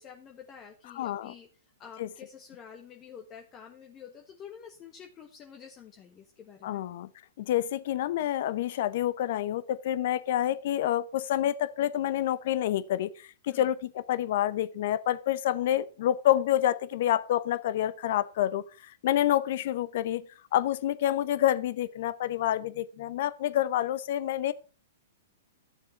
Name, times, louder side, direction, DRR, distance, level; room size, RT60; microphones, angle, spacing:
voice 1, 0.0-1.5 1.8-6.8 13.5-13.7, left 7 dB, 25° left, 1.2 m, -48 dB
voice 2, 0.9-1.3 2.0-2.1 6.6-7.1 7.4-20.2 20.5-24.5, left 12 dB, 55° left, 0.8 m, -28 dB
12.0 x 7.1 x 4.5 m
hypercardioid pair, 115°, 0 cm